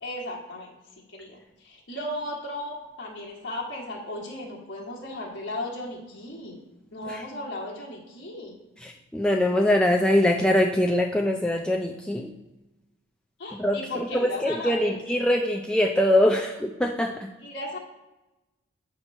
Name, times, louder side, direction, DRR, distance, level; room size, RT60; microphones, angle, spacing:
voice 1, 0.0-6.6 6.9-8.6 13.4-15.0 17.4-17.8, left 1 dB, 60° left, -3 dB, 1.4 m, -36 dB
voice 2, 8.8-12.3 13.6-17.3, left 1 dB, 5° left, 0 dB, 0.3 m, -23 dB
8.1 x 2.9 x 5.3 m, 1.0 s
head